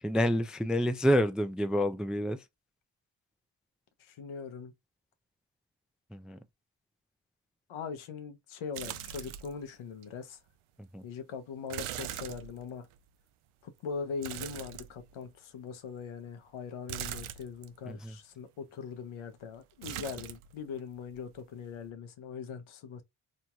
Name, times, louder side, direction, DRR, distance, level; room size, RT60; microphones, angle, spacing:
voice 1, 0.0-2.5 6.1-6.4 10.8-11.1 17.9-18.2, equal, ahead, 0.3 m, -28 dB
voice 2, 4.0-4.7 7.7-10.4 11.0-12.9 13.6-23.0, left 6 dB, 75° left, 0.8 m, -41 dB
sound 1, 8.7-9.6 10.0-10.1 11.7-13.0 14.2-15.3 16.9-17.7 19.8-20.5 20.8-21.4 21.7-21.9, right 11 dB, 75° right, 0.6 m, -41 dB
3.0 x 2.6 x 2.3 m
supercardioid pair, 50°, 50 cm